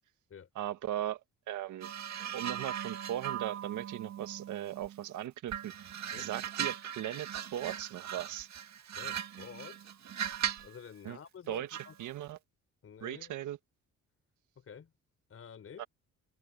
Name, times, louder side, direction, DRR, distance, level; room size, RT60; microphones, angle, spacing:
voice 1, 0.6-1.2 1.5-1.9 2.3-5.9 6.2-8.5 11.0-11.2 11.5-11.7 12.0-12.4 13.0-13.6 15.8-15.9, right 12 dB, 80° right, 1.8 m, -38 dB
sound 1, 1.8-5.0 5.5-10.8 11.7-12.0, right 9 dB, 65° right, 2.2 m, -39 dB
voice 2, 8.9-9.9 10.6-11.9 12.8-13.3 14.6-14.9 15.3-15.9, left 7 dB, 50° left, 4.0 m, -50 dB
cardioid pair, 90°, 30 cm